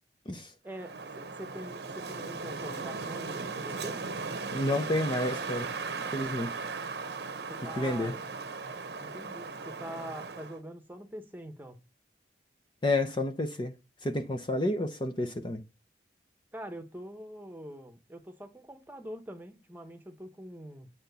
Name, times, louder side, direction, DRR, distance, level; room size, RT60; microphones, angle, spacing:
voice 1, 0.6-4.0 7.5-8.2 9.0-11.8 16.5-20.9, equal, 10° right, 1.1 m, -44 dB
Wind, 0.7-10.6, right 4 dB, 60° right, 0.9 m, -37 dB
voice 2, 4.5-5.8 6.1-6.6 7.8-8.2 12.8-13.7 14.0-15.6, left 1 dB, 25° left, 0.7 m, -30 dB
8.9 x 4.4 x 6.8 m
head